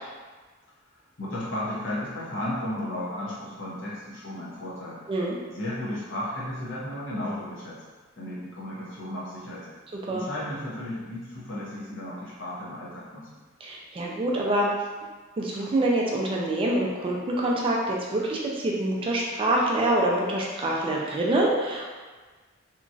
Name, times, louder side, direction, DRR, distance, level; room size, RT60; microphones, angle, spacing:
voice 1, 0.9-5.0 5.5-7.8 8.2-9.7 10.1-13.3, left 1 dB, 60° left, -7 dB, 0.9 m, -34 dB
voice 2, 13.6-14.7 15.4-21.8, right 1 dB, 25° right, -3 dB, 0.3 m, -25 dB
2.9 x 2.3 x 2.6 m, 1.4 s
head